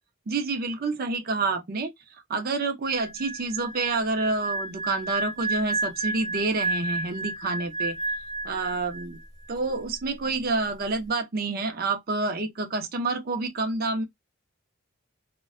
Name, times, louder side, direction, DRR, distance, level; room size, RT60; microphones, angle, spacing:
voice 1, 0.3-1.9 2.3-8.0 8.4-9.1 9.5-14.0, right 3 dB, 45° right, 0.5 m, -28 dB
sound 1, 2.8-9.2 9.5-9.8, right 2 dB, 35° left, 0.8 m, -31 dB
2.4 x 2.1 x 2.4 m
head